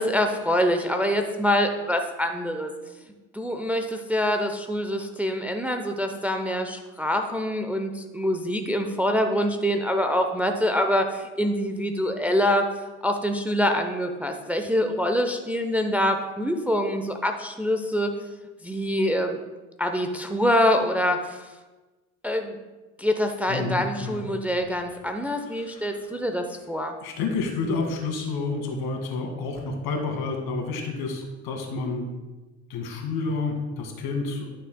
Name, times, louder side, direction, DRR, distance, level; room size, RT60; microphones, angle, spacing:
voice 1, 0.0-2.7 3.3-12.6 13.0-18.1 18.6-19.4 19.8-21.4 22.2-22.6 23.0-26.9, equal, 5° right, 5 dB, 0.7 m, -25 dB
voice 2, 23.5-24.2 25.4-26.1 27.0-32.1 32.7-34.5, left 3 dB, 60° left, 2 dB, 2.0 m, -30 dB
12.0 x 6.6 x 2.2 m, 1.2 s
hypercardioid pair, 60°, 43 cm